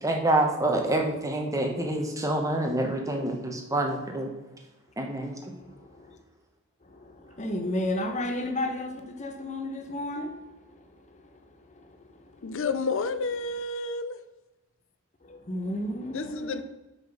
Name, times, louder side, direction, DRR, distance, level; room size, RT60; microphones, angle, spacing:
voice 1, 0.0-4.3 5.0-5.5, right 1 dB, 15° right, 1.1 m, -27 dB
voice 2, 5.6-6.2 6.8-12.6 15.2-16.6, left 1 dB, 35° left, 1.0 m, -34 dB
voice 3, 12.4-14.2 16.1-16.6, left 4 dB, 65° left, 0.6 m, -30 dB
6.1 x 5.6 x 5.4 m
head